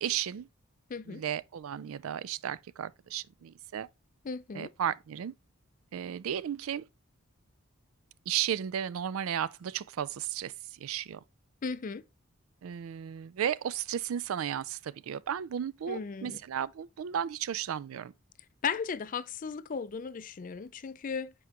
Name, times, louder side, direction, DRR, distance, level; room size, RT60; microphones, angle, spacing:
voice 1, 0.0-0.5 1.1-3.9 4.5-5.3 5.9-6.8 8.3-11.2 12.6-18.1, right 9 dB, 75° right, 0.4 m, -34 dB
voice 2, 0.9-1.2 4.2-4.7 11.6-12.0 15.9-16.4 18.6-21.3, left 5 dB, 40° left, 0.4 m, -36 dB
7.7 x 4.6 x 2.9 m
head